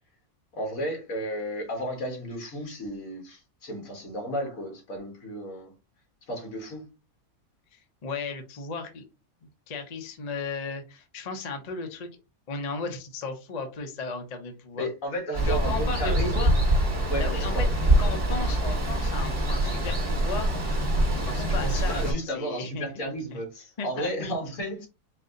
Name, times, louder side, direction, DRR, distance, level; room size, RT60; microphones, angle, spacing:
voice 1, 0.6-5.7 6.3-6.8 14.8-16.5 17.1-17.9 21.6-24.9, equal, 65° left, 1.9 m, -33 dB
voice 2, 7.7-9.1 9.7-12.1 12.5-14.9 15.4-16.5 17.2-17.7 18.0-20.5 20.9-23.4 23.8-24.3, left 4 dB, 40° left, 0.6 m, -35 dB
Water, 15.3-22.1, right 1 dB, 40° right, 1.6 m, -24 dB
4.3 x 2.7 x 3.8 m
omnidirectional pair, 1.5 m